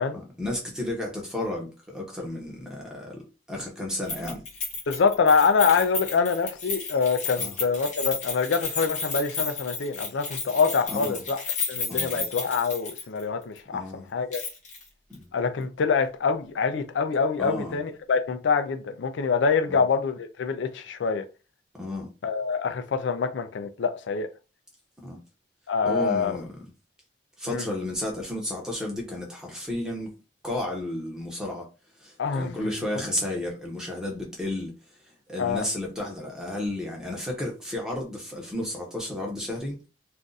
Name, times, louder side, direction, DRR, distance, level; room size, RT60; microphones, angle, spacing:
voice 1, 0.1-3.2 3.5-4.4 7.4-7.6 10.9-11.2 11.9-12.3 13.7-14.1 15.1-15.2 17.4-17.8 19.7-19.8 21.7-22.1 25.0-25.2 25.8-26.7 27.4-30.2 30.4-31.7 32.0-34.7 35.3-39.8, left 1 dB, 5° right, 0.9 m, -32 dB
Keys jangling, 4.1-13.2 13.5-13.6 14.3-14.8 15.1-15.2, left 4 dB, 40° left, 1.0 m, -33 dB
voice 2, 4.9-11.4 11.7-14.4 15.3-21.2 22.2-24.3 25.7-26.4 27.5-27.7 32.2-32.6 35.4-35.7, left 5 dB, 80° left, 0.4 m, -25 dB
2.5 x 2.4 x 3.9 m
head